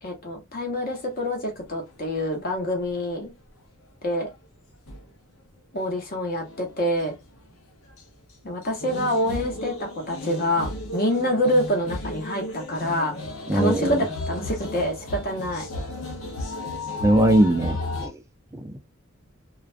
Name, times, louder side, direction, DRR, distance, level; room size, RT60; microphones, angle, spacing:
voice 1, 0.0-3.3 4.0-4.3 5.7-7.1 8.4-13.2 13.5-15.7, equal, 45° left, 0.9 m, -26 dB
sound 1, 4.9-5.0 6.4-6.7 7.0-7.1 8.8-18.1, left 2 dB, 75° left, 0.7 m, -34 dB
voice 2, 13.5-14.1 17.0-18.1 18.5-18.8, right 1 dB, 15° right, 0.4 m, -21 dB
2.4 x 2.1 x 2.4 m
head